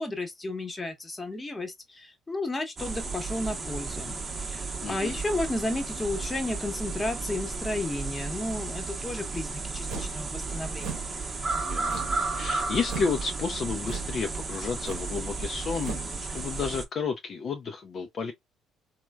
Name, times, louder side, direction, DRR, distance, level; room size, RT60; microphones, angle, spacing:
voice 1, 0.0-4.1 4.4-11.1, left 2 dB, 20° left, 1.0 m, -33 dB
sound 1, 2.8-16.8, right 4 dB, 30° right, 0.8 m, -33 dB
voice 2, 4.8-5.2 11.6-18.3, left 5 dB, 50° left, 0.5 m, -32 dB
sound 2, 9.9-10.2 10.8-11.1 11.8-12.3 12.8-13.2 13.8-14.2 14.8-15.1 15.8-16.1, right 5 dB, 75° right, 0.8 m, -38 dB
3.1 x 2.2 x 2.3 m
supercardioid pair, 70°, 0 cm